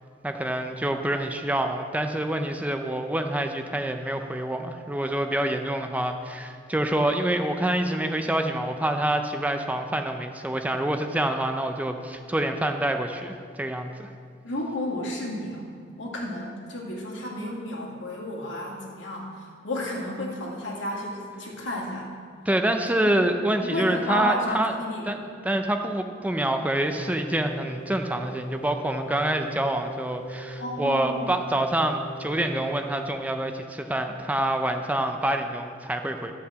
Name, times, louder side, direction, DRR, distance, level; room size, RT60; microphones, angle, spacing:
voice 1, 0.2-14.1 22.5-24.7 25.0-25.2 25.4-36.3, right 1 dB, 10° right, 5 dB, 0.5 m, -26 dB
voice 2, 14.4-15.6 16.0-22.1 23.0-23.2 23.6-25.1 30.6-31.3, left 1 dB, 75° left, -2 dB, 2.2 m, -32 dB
sound 1, 26.8-33.2, right 1 dB, 40° left, 0.8 m, -39 dB
11.5 x 5.7 x 7.5 m, 2.2 s
head